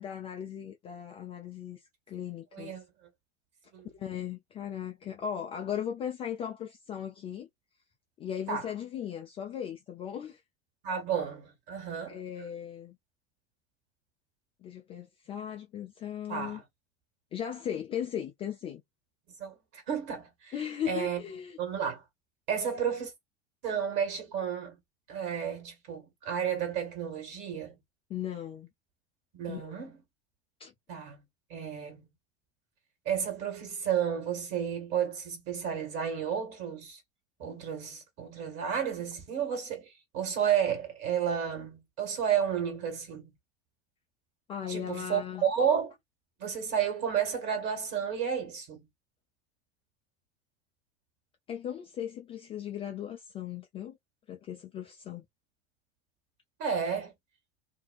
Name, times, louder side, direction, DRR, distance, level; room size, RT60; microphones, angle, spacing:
voice 1, 0.0-1.8 2.1-2.7 3.9-7.5 8.2-10.4 12.1-13.0 14.6-16.6 17.3-18.8 20.5-21.6 28.1-28.7 29.5-29.8 30.6-30.7 44.5-45.5 51.5-54.0 54.3-55.2, left 9 dB, 15° left, 0.3 m, -37 dB
voice 2, 2.5-2.8 3.7-3.9 8.5-8.7 10.8-12.2 16.3-16.6 19.4-20.5 20.9-21.2 21.6-22.0 22.5-23.1 23.6-24.8 25.1-27.8 29.3-30.0 30.9-31.2 31.5-32.1 33.0-37.0 37.4-43.3 44.7-45.9 46.4-48.9 56.6-57.1, right 8 dB, 45° right, 1.5 m, -32 dB
2.5 x 2.1 x 2.4 m
figure-of-eight pair, 80°, 33 cm